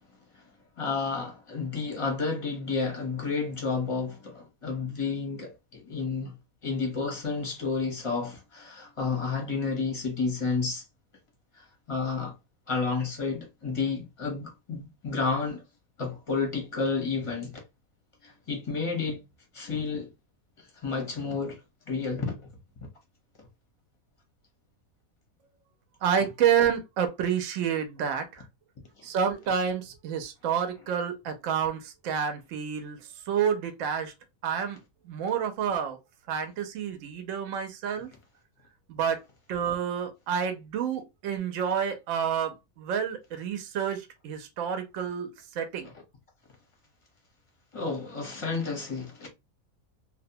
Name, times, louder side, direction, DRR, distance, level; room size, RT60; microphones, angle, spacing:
voice 1, 0.8-6.3 6.6-10.8 11.9-12.3 12.7-15.6 16.0-17.6 18.2-19.2 19.5-20.1 20.8-21.6 21.9-22.3 45.8-45.9 47.7-49.3, left 4 dB, 30° left, 0.6 m, -31 dB
voice 2, 26.0-28.4 29.0-33.0 33.3-34.1 34.4-34.8 35.1-36.0 36.3-38.1 38.9-39.2 39.5-45.3 45.6-45.9, right 8 dB, 65° right, 0.9 m, -29 dB
2.7 x 2.1 x 2.6 m
omnidirectional pair, 1.6 m